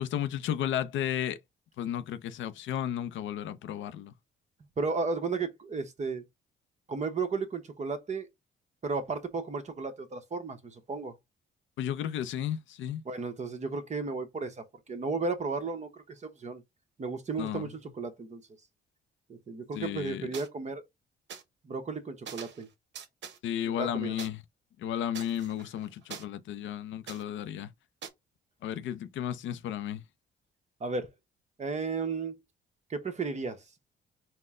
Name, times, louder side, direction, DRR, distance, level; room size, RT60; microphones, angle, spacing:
voice 1, 0.0-1.4 1.8-4.1 11.8-13.0 17.4-17.7 19.7-20.3 23.4-24.4 24.8-27.7 28.6-30.0, left 10 dB, 75° left, 0.5 m, -33 dB
voice 2, 4.8-6.2 6.9-8.3 8.8-11.1 13.0-16.6 17.0-18.4 19.3-20.8 21.6-22.7 23.6-24.2 30.8-31.1 31.6-32.3 32.9-33.6, right 4 dB, 35° right, 1.0 m, -34 dB
sound 1, 20.3-20.5 21.3-21.4 22.3-22.6 22.9-23.4 24.2-24.3 25.1-26.2 27.1-27.2 28.0-28.1, right 7 dB, 65° right, 1.0 m, -43 dB
4.2 x 2.1 x 3.6 m
cardioid pair, 90°, 20 cm